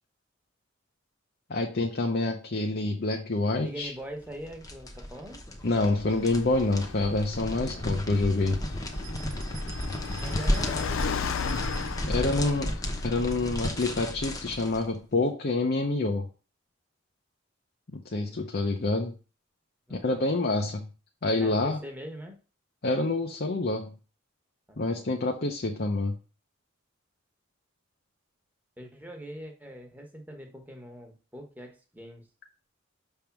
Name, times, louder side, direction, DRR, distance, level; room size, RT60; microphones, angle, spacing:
voice 1, 1.5-3.9 5.6-8.6 12.1-12.7 13.0-16.3 17.9-19.2 19.9-20.9 21.2-21.8 22.8-23.9 24.8-26.2, left 2 dB, 50° left, 3 dB, 0.7 m, -27 dB
voice 2, 3.6-5.4 10.2-11.3 12.1-12.7 18.1-18.6 19.9-20.3 21.4-22.4 24.7-25.1 28.8-32.3, equal, 10° right, 2 dB, 1.2 m, -43 dB
sound 1, 4.2-14.9, equal, 15° left, 0.9 m, -33 dB
Car, 6.0-13.9, left 7 dB, 80° left, 0.4 m, -37 dB
sound 2, 8.9-12.2, right 10 dB, 85° right, 1.0 m, -47 dB
6.5 x 3.6 x 5.9 m, 0.35 s
head